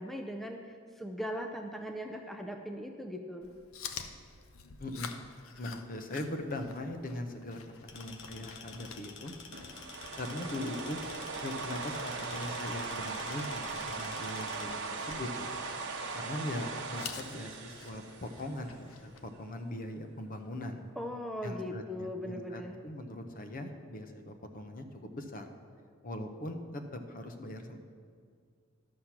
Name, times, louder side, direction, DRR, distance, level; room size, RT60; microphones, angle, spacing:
voice 1, 0.0-3.5 21.0-22.8, equal, ahead, 3 dB, 0.5 m, -39 dB
Chewing mastication, 3.4-19.3, left 6 dB, 90° left, 0.7 m, -50 dB
voice 2, 4.8-5.1 5.6-9.3 10.2-11.0 11.4-15.6 16.1-20.8 21.4-25.5 26.0-27.8, left 1 dB, 45° left, 6 dB, 0.8 m, -40 dB
sound 1, 7.9-14.6, left 5 dB, 60° left, 1.0 m, -50 dB
sound 2, 9.5-18.7, right 4 dB, 60° right, 1.0 m, -39 dB
11.5 x 6.4 x 5.9 m, 2.1 s
head